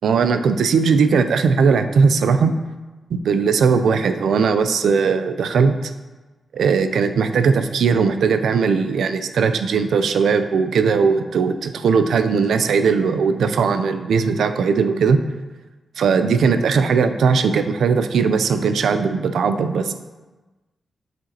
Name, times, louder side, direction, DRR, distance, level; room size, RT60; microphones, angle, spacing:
voice 1, 0.0-2.5 3.1-5.9 6.5-15.2 16.0-19.9, right 5 dB, 90° right, 9 dB, 0.4 m, -18 dB
7.6 x 5.0 x 2.8 m, 1.2 s
wide cardioid pair, 155°, 0 cm